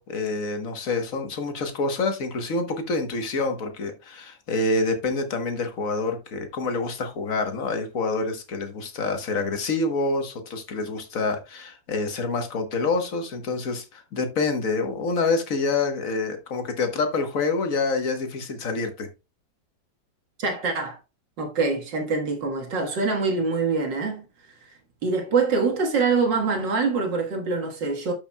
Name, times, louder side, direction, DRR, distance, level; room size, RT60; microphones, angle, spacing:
voice 1, 0.0-19.1, left 3 dB, 45° left, 1.5 m, -27 dB
voice 2, 20.4-21.0 21.4-24.2 25.0-28.1, right 4 dB, 65° right, 2.2 m, -24 dB
12.5 x 5.8 x 2.2 m
omnidirectional pair, 2.2 m